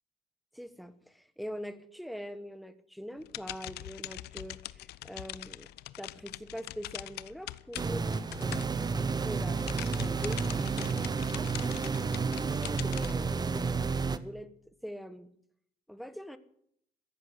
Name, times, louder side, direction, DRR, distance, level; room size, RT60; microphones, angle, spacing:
voice 1, 0.5-5.7 6.0-8.1 8.4-11.8 12.4-15.3 15.9-16.4, equal, ahead, 12 dB, 1.2 m, -43 dB
sound 1, 3.2-9.1 9.5-13.1, left 16 dB, 75° left, 0.7 m, -43 dB
sound 2, 7.8-14.2, right 4 dB, 25° right, 0.9 m, -31 dB
14.5 x 11.0 x 8.1 m, 0.68 s
cardioid pair, 110°, 17 cm